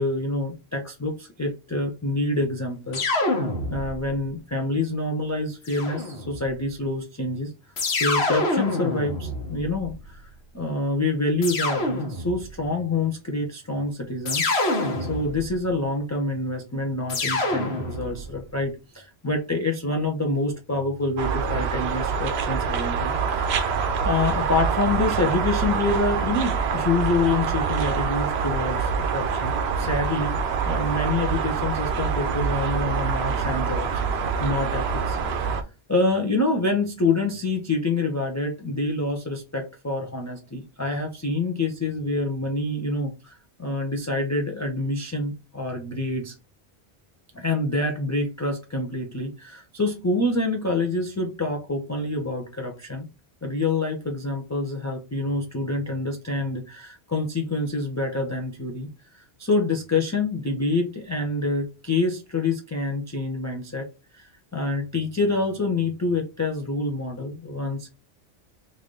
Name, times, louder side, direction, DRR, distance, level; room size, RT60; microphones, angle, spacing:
voice 1, 0.0-3.1 3.7-7.5 7.9-14.5 15.1-30.3 30.6-35.6 35.9-46.3 47.3-53.1 53.4-58.9 59.1-63.9 64.1-67.9, left 2 dB, 25° left, 1 dB, 0.3 m, -27 dB
sound 1, 2.9-4.1 5.7-6.5 7.8-10.1 11.4-12.5 14.3-15.6 17.1-18.3, left 2 dB, 75° left, 1.2 m, -26 dB
sound 2, 21.2-35.6, right 6 dB, 75° right, 0.8 m, -25 dB
3.2 x 2.6 x 3.6 m, 0.30 s
omnidirectional pair, 1.1 m